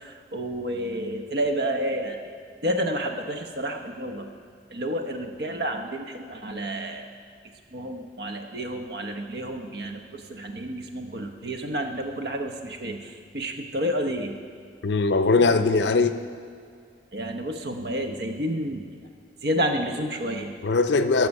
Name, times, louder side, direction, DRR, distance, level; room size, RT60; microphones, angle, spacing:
voice 1, 0.0-2.2 2.6-4.3 4.7-7.1 7.7-10.0 10.3-14.4 17.1-18.8 19.4-20.5, equal, 65° right, 4 dB, 0.9 m, -30 dB
voice 2, 14.8-16.2 20.6-21.3, left 3 dB, 85° left, 10 dB, 0.6 m, -20 dB
13.0 x 6.0 x 5.4 m, 2.2 s
head